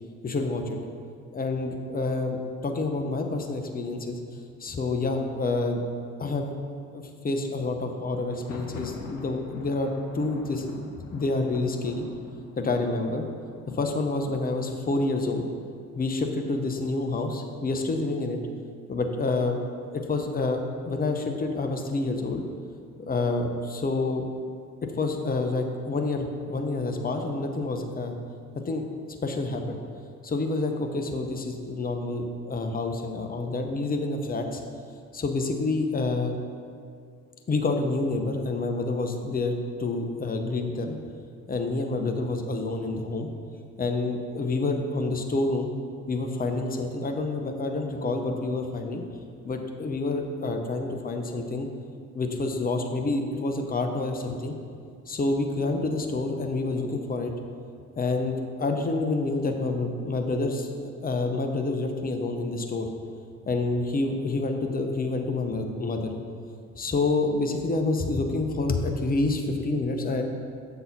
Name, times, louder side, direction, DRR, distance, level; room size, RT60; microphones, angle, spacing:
voice 1, 0.2-0.8 1.3-2.4 2.6-4.2 4.6-5.8 6.2-6.5 6.9-12.1 12.6-13.3 13.7-15.4 15.9-18.4 18.9-19.6 19.9-22.4 23.0-24.2 25.0-28.1 28.5-28.9 29.2-29.8 30.2-34.6 35.1-36.4 37.5-41.0 41.5-43.3 43.8-45.7 46.1-49.0 49.4-51.7 52.1-54.6 55.1-57.3 58.0-60.7 61.0-62.9 63.5-66.1 66.8-70.2, left 3 dB, 20° left, 4 dB, 0.8 m, -28 dB
Thunder, 8.2-16.0, left 4 dB, 85° left, 0.7 m, -45 dB
6.9 x 4.0 x 5.3 m, 2.2 s
hypercardioid pair, 50°, 41 cm